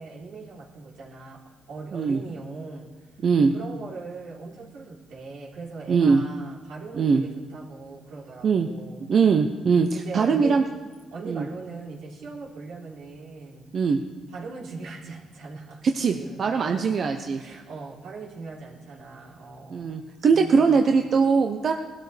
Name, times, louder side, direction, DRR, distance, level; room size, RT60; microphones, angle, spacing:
voice 1, 0.0-2.9 3.5-9.1 9.9-10.6 11.1-13.7 14.3-16.9 17.3-20.9, right 4 dB, 85° right, -4 dB, 3.3 m, -40 dB
voice 2, 3.2-3.5 5.9-6.2 6.9-7.2 8.4-8.7 9.1-10.6 11.2-11.4 13.7-14.0 15.8-17.4 19.7-21.7, right 5 dB, 55° right, 4 dB, 0.8 m, -21 dB
19.5 x 12.5 x 3.4 m, 1.5 s
cardioid pair, 90°, 0 cm